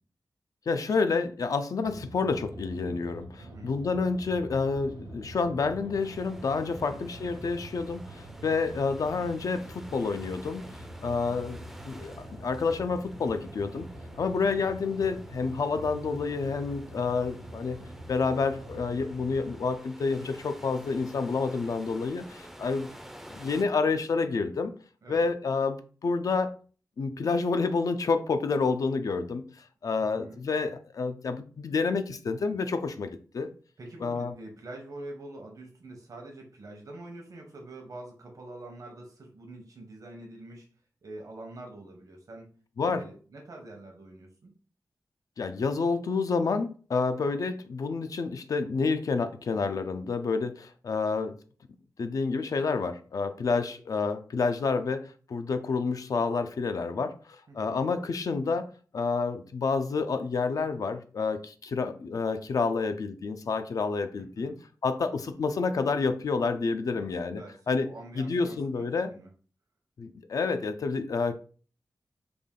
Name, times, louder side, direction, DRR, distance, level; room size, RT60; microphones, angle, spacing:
voice 1, 0.7-10.7 11.0-13.9 14.2-17.8 18.1-22.9 23.3-24.7 25.1-26.5 27.0-33.5 34.0-34.3 42.8-43.0 45.4-51.4 52.0-64.5 64.8-67.9 68.2-69.1 70.0-71.4, left 4 dB, 65° left, 9 dB, 0.4 m, -29 dB
sound 1, 1.8-19.6, right 1 dB, 90° right, 0.8 m, -45 dB
voice 2, 3.4-3.7 6.8-7.0 11.1-11.5 25.0-25.2 29.9-30.4 33.8-40.7 41.0-42.5 42.8-44.5 47.1-47.3 57.5-57.8 64.4-64.6 66.9-69.3, right 2 dB, 60° right, 1 dB, 0.8 m, -46 dB
sound 2, 6.0-23.6, equal, 5° right, 0.4 m, -50 dB
3.4 x 2.3 x 3.6 m, 0.39 s
wide cardioid pair, 125°, 7 cm